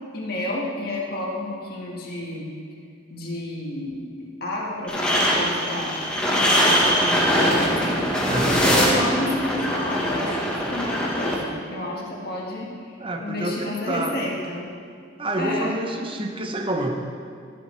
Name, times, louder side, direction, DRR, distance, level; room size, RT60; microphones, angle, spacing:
voice 1, 0.1-2.5 3.1-12.7 13.2-14.6 15.4-15.8, left 1 dB, 55° left, -3 dB, 1.7 m, -30 dB
sound 1, 4.9-11.3, equal, 5° left, 1.3 m, -22 dB
voice 2, 8.3-8.7 13.0-14.2 15.2-17.0, right 1 dB, 30° right, 4 dB, 0.8 m, -28 dB
12.5 x 8.3 x 3.3 m, 2.2 s
head